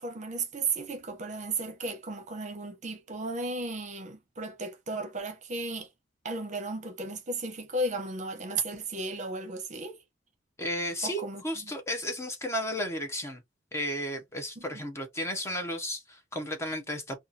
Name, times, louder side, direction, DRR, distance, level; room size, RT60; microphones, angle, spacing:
voice 1, 0.0-5.9 6.2-10.0 11.0-11.7 14.6-14.7, right 2 dB, 40° right, 0.7 m, -34 dB
voice 2, 10.6-13.4 13.7-17.2, equal, 15° left, 0.6 m, -33 dB
2.7 x 2.3 x 2.4 m
head